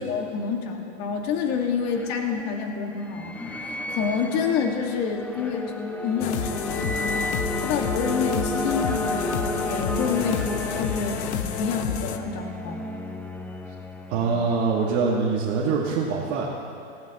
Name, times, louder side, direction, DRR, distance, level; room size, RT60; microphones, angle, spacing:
voice 1, 0.0-3.4 3.6-5.7 6.0-6.6 7.6-10.5 10.8-12.8, left 6 dB, 45° left, 3 dB, 1.8 m, -28 dB
sound 1, 1.3-15.0, left 1 dB, 5° left, 0.7 m, -32 dB
sound 2, 6.2-12.2, left 9 dB, 65° left, 1.0 m, -30 dB
voice 2, 14.1-16.5, right 4 dB, 50° right, -5 dB, 1.8 m, -24 dB
18.5 x 14.5 x 3.0 m, 2.6 s
hypercardioid pair, 110°, 36 cm